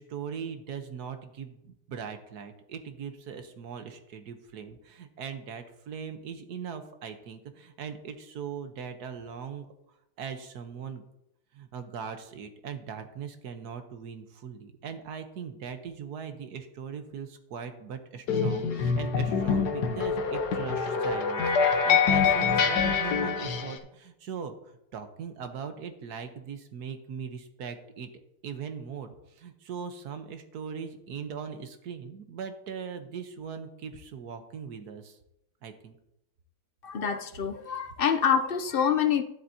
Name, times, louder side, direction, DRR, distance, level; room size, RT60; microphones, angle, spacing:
voice 1, 0.0-9.7 10.2-11.0 11.5-24.5 24.9-28.1 28.4-35.2 35.6-36.0, right 7 dB, 75° right, 8 dB, 1.5 m, -40 dB
sound 1, 18.3-23.8, left 6 dB, 90° left, 1.6 m, -25 dB
voice 2, 36.8-39.2, left 7 dB, 55° left, 8 dB, 0.6 m, -26 dB
12.0 x 10.5 x 2.8 m, 0.81 s
omnidirectional pair, 1.7 m